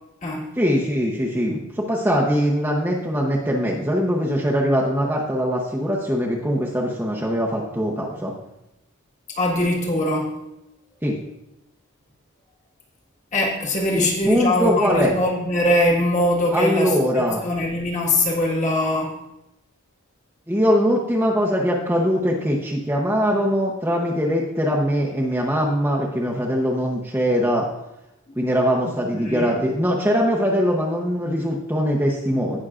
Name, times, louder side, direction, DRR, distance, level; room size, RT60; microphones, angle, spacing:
voice 1, 0.6-8.3 11.0-11.2 13.9-15.2 16.5-17.4 20.5-27.7 28.4-32.6, equal, 10° right, -4 dB, 0.8 m, -22 dB
voice 2, 9.4-10.3 13.3-19.2 29.1-29.6, left 1 dB, 35° left, -2 dB, 1.7 m, -22 dB
17.5 x 6.1 x 2.5 m, 0.91 s
head